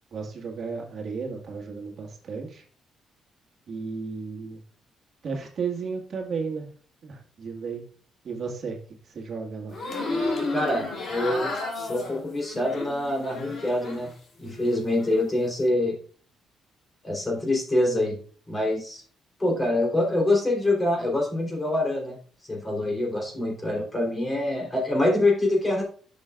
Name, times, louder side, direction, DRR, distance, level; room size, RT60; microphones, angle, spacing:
voice 1, 0.1-2.6 3.7-4.6 5.2-6.7 7.0-7.8 8.2-8.8 9.0-9.8, right 5 dB, 55° right, 1 dB, 1.6 m, -33 dB
sound 1, 9.7-14.1 14.5-15.2, left 2 dB, 50° left, 2.6 m, -32 dB
voice 2, 10.5-14.1 14.4-15.9 17.0-18.2 18.5-19.0 19.4-22.2 22.5-25.8, left 1 dB, 20° left, 0 dB, 3.4 m, -25 dB
10.5 x 6.5 x 2.4 m, 0.44 s
cardioid pair, 90°, 0 cm